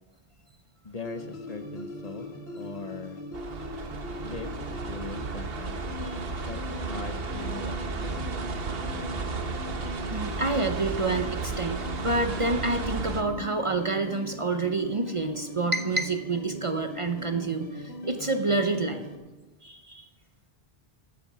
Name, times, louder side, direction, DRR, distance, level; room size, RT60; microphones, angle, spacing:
voice 1, 0.8-3.2 4.2-5.8 6.5-7.8 8.0-8.2, left 3 dB, 40° left, 8 dB, 0.8 m, -40 dB
sound 1, 1.0-19.2, left 2 dB, 80° left, 1.9 m, -40 dB
sound 2, 3.3-13.2, right 4 dB, 65° right, 1.2 m, -34 dB
voice 2, 10.1-19.0 19.6-20.1, right 3 dB, 35° right, 6 dB, 0.7 m, -28 dB
15.0 x 8.5 x 6.1 m, 1.1 s
omnidirectional pair, 1.1 m